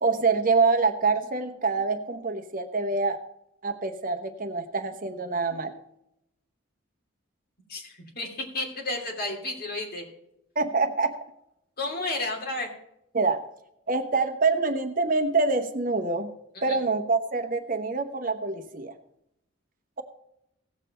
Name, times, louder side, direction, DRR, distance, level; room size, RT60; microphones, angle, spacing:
voice 1, 0.0-3.2 3.6-5.7 10.6-11.1 13.1-13.4 13.9-16.3 16.6-18.9, right 4 dB, 40° right, 6 dB, 0.9 m, -25 dB
voice 2, 7.7-10.0 11.8-12.7 16.5-16.8, left 2 dB, 45° left, 0 dB, 2.9 m, -32 dB
17.0 x 7.4 x 4.3 m, 0.82 s
head